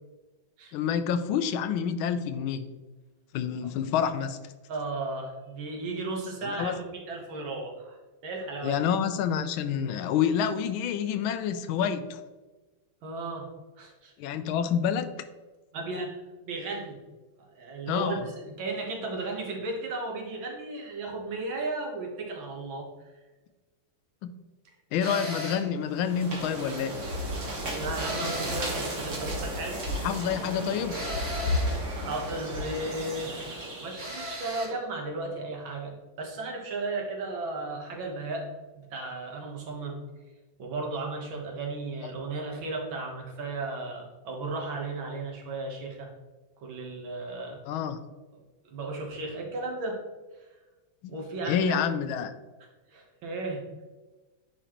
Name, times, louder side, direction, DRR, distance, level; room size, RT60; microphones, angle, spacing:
voice 1, 0.7-2.6 3.3-4.4 6.4-6.7 8.6-12.2 14.2-15.1 17.9-18.2 24.2-24.3 24.9-26.9 30.0-31.0 47.7-48.0 51.0-51.1 51.5-52.3, left 8 dB, 90° left, 11 dB, 1.4 m, -28 dB
voice 2, 4.7-8.8 13.0-13.5 13.8-14.1 15.7-16.2 16.4-17.0 17.6-22.9 27.4-30.1 32.0-33.4 33.8-38.5 38.8-40.0 40.6-46.1 46.6-47.6 48.7-50.0 51.1-51.8 52.9-53.6, right 3 dB, 80° right, 0 dB, 2.1 m, -35 dB
sound 1, 25.0-25.7 27.9-28.7 30.9-31.8 34.0-34.8, equal, 25° right, 2.3 m, -36 dB
sound 2, 25.9-34.3, equal, 40° right, 1.6 m, -33 dB
9.9 x 4.3 x 3.0 m, 1.2 s
omnidirectional pair, 2.1 m